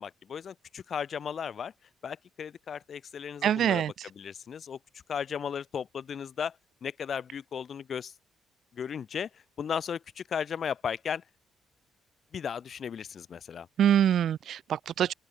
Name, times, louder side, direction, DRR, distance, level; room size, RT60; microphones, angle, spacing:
voice 1, 0.0-1.7 2.0-3.8 4.2-4.8 5.1-6.6 6.8-8.1 8.7-11.2 12.3-13.7, left 7 dB, 55° left, 0.6 m, -35 dB
voice 2, 3.4-3.9 13.8-15.1, right 10 dB, 65° right, 0.4 m, -24 dB
open air
cardioid pair, 90°, 0 cm